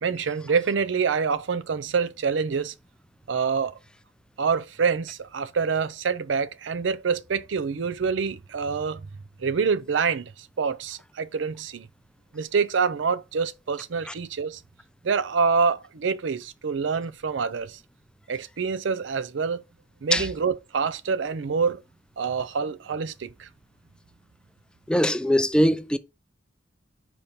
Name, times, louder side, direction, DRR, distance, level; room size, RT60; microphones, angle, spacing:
voice 1, 0.0-2.7 3.3-3.8 4.4-9.0 9.4-11.9 12.3-14.6 15.0-17.8 18.3-19.6 20.0-21.8 22.2-23.5, right 5 dB, 80° right, 0.5 m, -26 dB
voice 2, 24.9-26.0, equal, 5° left, 0.4 m, -21 dB
5.2 x 4.3 x 4.2 m
head